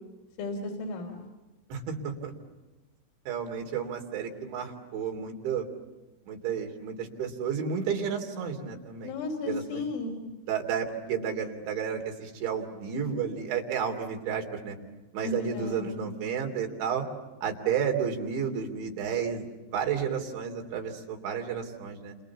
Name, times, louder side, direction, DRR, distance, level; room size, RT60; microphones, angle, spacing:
voice 1, 0.4-1.3 9.0-10.2 15.2-16.1, left 2 dB, 85° left, -1 dB, 5.9 m, -34 dB
voice 2, 1.7-2.3 3.3-5.7 6.3-9.1 9.5-9.8 10.4-14.8 15.1-17.1 17.4-22.1, right 7 dB, 75° right, 3 dB, 5.5 m, -32 dB
29.5 x 28.0 x 7.2 m, 1.1 s
omnidirectional pair, 5.3 m